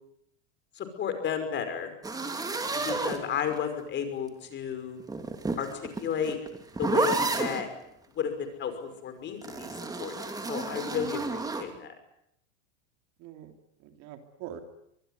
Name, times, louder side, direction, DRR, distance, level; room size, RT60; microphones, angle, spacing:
voice 1, 0.8-1.9 2.7-5.0 5.6-6.4 6.8-7.7 8.2-9.7 10.0-11.9, left 7 dB, 30° left, 9 dB, 5.6 m, -33 dB
sound 1, 2.0-3.8 5.0-7.7 9.4-11.7, right 3 dB, 10° right, 2.8 m, -31 dB
voice 2, 10.9-11.4 13.2-13.5 13.8-14.6, right 10 dB, 45° right, 7 dB, 3.2 m, -44 dB
25.0 x 21.0 x 9.5 m, 0.77 s
supercardioid pair, 140°, 37 cm